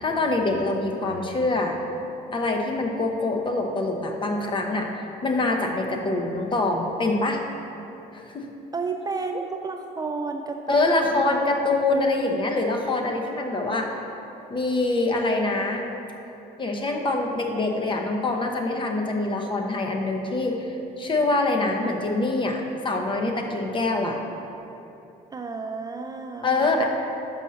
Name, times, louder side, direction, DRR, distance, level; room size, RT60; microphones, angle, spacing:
voice 1, 0.0-1.8 2.3-7.4 8.1-8.5 10.7-14.0 14.5-15.8 16.6-24.2 26.4-26.8, left 2 dB, 30° left, 2 dB, 0.9 m, -25 dB
voice 2, 8.7-11.3 12.2-12.5 25.3-26.8, right 4 dB, 25° right, 4 dB, 0.4 m, -32 dB
5.6 x 5.3 x 6.3 m, 2.8 s
cardioid pair, 110°, 17 cm